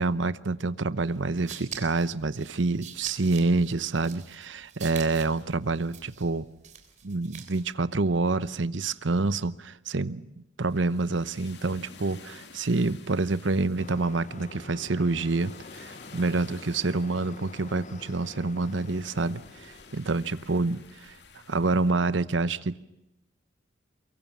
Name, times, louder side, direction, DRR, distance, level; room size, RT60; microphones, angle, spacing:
voice 1, 0.0-6.4 7.0-20.8 21.5-22.8, right 3 dB, 75° right, 15 dB, 0.9 m, -27 dB
sound 1, 1.1-7.7, right 8 dB, 40° right, 3.5 m, -44 dB
sound 2, 10.6-21.9, left 5 dB, 60° left, 2.4 m, -52 dB
sound 3, 13.8-20.0, left 3 dB, 40° left, 0.8 m, -47 dB
23.5 x 23.0 x 7.2 m, 0.89 s
head